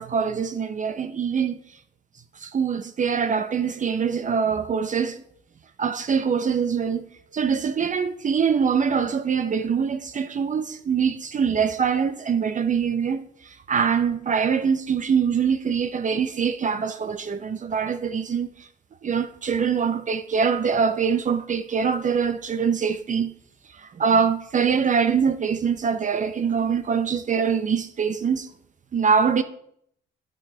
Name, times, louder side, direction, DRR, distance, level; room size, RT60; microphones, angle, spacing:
voice 1, 0.0-1.6 2.4-5.2 5.8-7.0 7.3-18.7 19.0-23.3 23.7-28.5 28.9-29.4, right 6 dB, 40° right, 0.6 m, -24 dB
10.5 x 5.3 x 4.3 m
cardioid pair, 90°, 20 cm